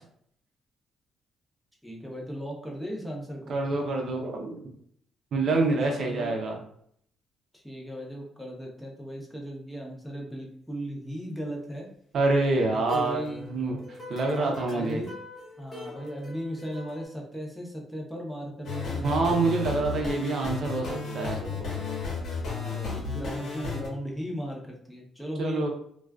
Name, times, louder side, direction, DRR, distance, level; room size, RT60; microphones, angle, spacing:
voice 1, 1.8-3.6 5.9-6.3 7.5-11.9 12.7-13.5 14.4-15.1 15.6-19.8 22.4-25.6, equal, 5° left, -2 dB, 0.7 m, -37 dB
voice 2, 3.5-4.7 5.3-6.6 12.1-15.0 19.0-21.8 25.4-25.7, right 3 dB, 60° right, 1 dB, 0.6 m, -27 dB
sound 1, 12.9-17.1, left 2 dB, 35° left, 1.0 m, -43 dB
sound 2, 18.6-23.9, left 5 dB, 65° left, 1.0 m, -33 dB
2.4 x 2.3 x 2.2 m, 0.65 s
cardioid pair, 90°, 0 cm